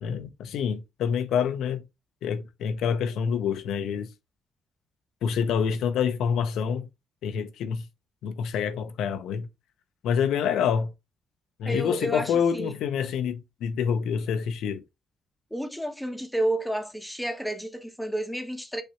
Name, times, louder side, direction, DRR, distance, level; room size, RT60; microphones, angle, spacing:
voice 1, 0.0-1.8 2.2-4.1 5.2-6.9 7.2-7.9 8.2-9.5 10.0-10.9 11.6-14.8, left 7 dB, 80° left, 0.8 m, -27 dB
voice 2, 11.6-12.7 15.5-18.8, right 1 dB, ahead, 0.9 m, -30 dB
6.6 x 2.7 x 3.0 m
cardioid pair, 90°, 0 cm